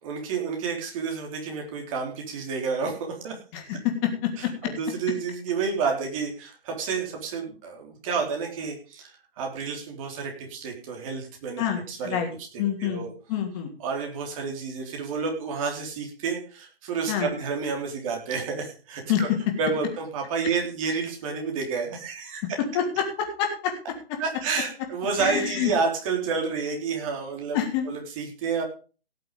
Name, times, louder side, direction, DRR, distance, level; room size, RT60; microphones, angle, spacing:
voice 1, 0.0-3.4 4.4-9.1 9.4-13.1 13.8-19.3 19.6-22.6 24.2-27.6 27.8-28.6, right 5 dB, 30° right, 2 dB, 3.5 m, -30 dB
voice 2, 3.5-4.5 11.6-12.3 12.6-13.7 17.1-17.3 19.1-19.2 22.7-23.7 25.2-25.7 27.5-27.8, left 9 dB, 25° left, 3 dB, 3.0 m, -27 dB
17.5 x 6.7 x 5.3 m, 0.37 s
hypercardioid pair, 155°, 31 cm